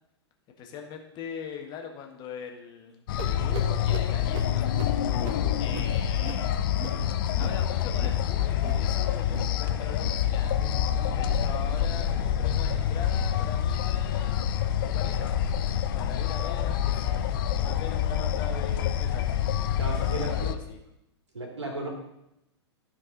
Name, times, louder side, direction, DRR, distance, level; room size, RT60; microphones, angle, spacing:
voice 1, 0.6-4.8 5.6-6.5 7.4-10.7 11.1-14.5 14.8-15.4 15.9-19.3 20.0-20.8, left 6 dB, 30° left, 2 dB, 1.5 m, -41 dB
sound 1, 3.1-20.5, left 9 dB, 50° left, 0.6 m, -27 dB
sound 2, 3.2-8.2 8.5-8.9 9.2-9.6 9.9-10.2 10.6-11.0 11.4-11.7 12.1-12.4 12.9-13.2 13.8-14.0 14.6-14.8 15.5-15.6 16.4-16.5, right 4 dB, 40° right, 1.8 m, -42 dB
voice 2, 19.7-20.5 21.3-21.9, right 2 dB, 75° right, 0 dB, 2.4 m, -34 dB
13.5 x 4.8 x 3.9 m, 0.83 s
figure-of-eight pair, 100°, 15 cm